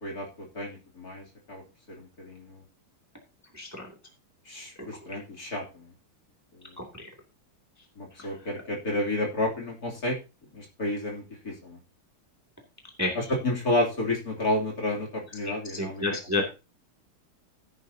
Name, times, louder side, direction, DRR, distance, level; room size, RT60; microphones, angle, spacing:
voice 1, 0.0-1.6 1.9-2.6 4.5-5.8 8.0-10.2 10.5-11.8 13.2-16.0, left 1 dB, 40° left, -1 dB, 3.5 m, -31 dB
voice 2, 3.5-3.9 6.8-7.1 8.2-8.3 13.0-13.1 15.4-16.4, left 2 dB, 5° right, 1 dB, 2.3 m, -30 dB
15.5 x 9.4 x 2.8 m, 0.29 s
omnidirectional pair, 2.4 m